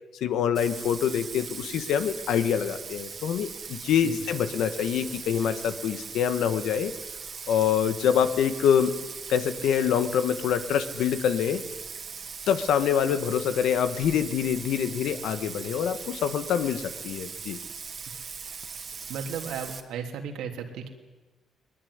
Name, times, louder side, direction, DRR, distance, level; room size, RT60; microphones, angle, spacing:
voice 1, 0.2-6.9 7.5-9.0 9.3-11.6 12.5-17.6, left 8 dB, 80° left, 10 dB, 1.7 m, -25 dB
Bathtub (filling or washing), 0.5-19.8, right 6 dB, 45° right, 2.4 m, -40 dB
voice 2, 19.1-20.9, right 7 dB, 85° right, 3 dB, 3.1 m, -34 dB
21.0 x 20.5 x 9.8 m, 1.2 s
cardioid pair, 90°, 0 cm